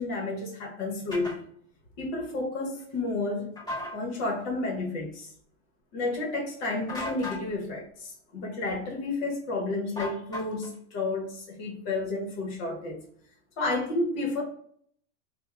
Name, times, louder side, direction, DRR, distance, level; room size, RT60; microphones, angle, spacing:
voice 1, 0.0-1.5 2.0-3.5 3.9-5.3 5.9-13.0 13.6-14.4, left 2 dB, 50° left, 0 dB, 1.1 m, -31 dB
sound 1, 1.1-1.4 3.6-3.9 6.9-7.4 10.0-10.7, left 1 dB, 10° left, 1.2 m, -36 dB
3.4 x 2.3 x 3.4 m, 0.62 s
supercardioid pair, 175°, 36 cm